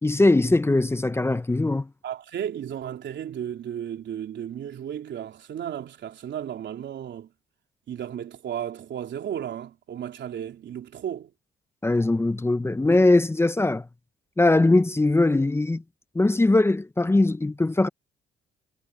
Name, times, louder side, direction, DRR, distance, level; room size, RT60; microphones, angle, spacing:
voice 1, 0.0-1.9 11.8-13.9 14.4-15.8 16.1-17.9, left 2 dB, 10° left, 0.6 m, -21 dB
voice 2, 2.0-7.3 7.9-11.3, right 9 dB, 65° right, 3.7 m, -34 dB
cardioid pair, 90°, 20 cm